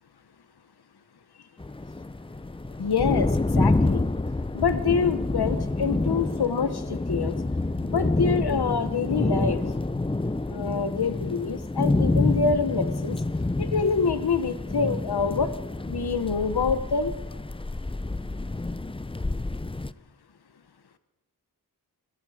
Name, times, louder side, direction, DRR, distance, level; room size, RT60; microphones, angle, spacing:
sound 1, 1.6-19.9, left 2 dB, 15° left, 0.6 m, -28 dB
voice 1, 2.8-4.1 4.5-7.3 7.8-9.8 10.5-13.2 13.6-15.5 15.9-17.1, left 5 dB, 70° left, 11 dB, 1.3 m, -26 dB
26.0 x 21.0 x 5.0 m, 0.96 s
cardioid pair, 45°, 40 cm